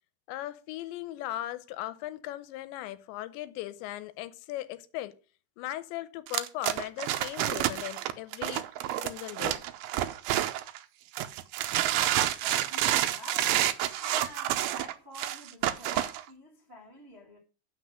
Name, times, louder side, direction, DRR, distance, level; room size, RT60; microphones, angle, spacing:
voice 1, 0.3-5.2 5.6-8.7 9.0-9.6, left 15 dB, 85° left, 2.8 m, -38 dB
sound 1, 6.3-10.8 11.2-16.2, right 13 dB, 85° right, 2.2 m, -29 dB
voice 2, 12.1-13.7 14.0-17.4, left 1 dB, 60° right, 0.6 m, -47 dB
7.7 x 6.2 x 6.3 m
omnidirectional pair, 5.2 m